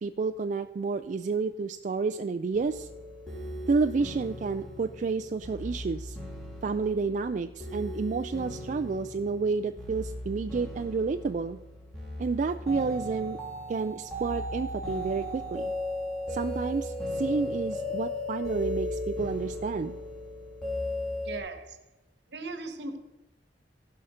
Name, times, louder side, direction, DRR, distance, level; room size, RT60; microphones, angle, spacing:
voice 1, 0.0-2.9 3.7-6.2 6.6-11.6 12.2-13.4 13.7-15.7 16.3-20.0, right 4 dB, 45° right, 8 dB, 0.3 m, -30 dB
sound 1, 2.5-21.4, left 1 dB, 5° left, 2.8 m, -36 dB
voice 2, 21.2-21.8 22.3-23.0, right 3 dB, 75° right, 8 dB, 1.3 m, -38 dB
15.5 x 5.7 x 5.0 m, 1.0 s
head